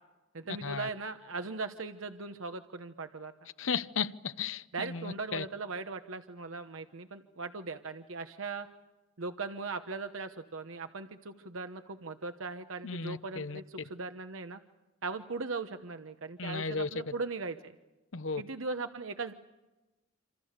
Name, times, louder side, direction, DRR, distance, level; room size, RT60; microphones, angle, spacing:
voice 1, 0.3-3.3 4.7-8.7 9.2-14.6 15.0-17.7 18.4-19.3, right 3 dB, 85° right, 1.0 m, -39 dB
voice 2, 3.6-5.5 12.8-13.6 16.4-17.1 18.1-18.4, left 5 dB, 70° left, 0.9 m, -35 dB
27.5 x 27.5 x 6.7 m
head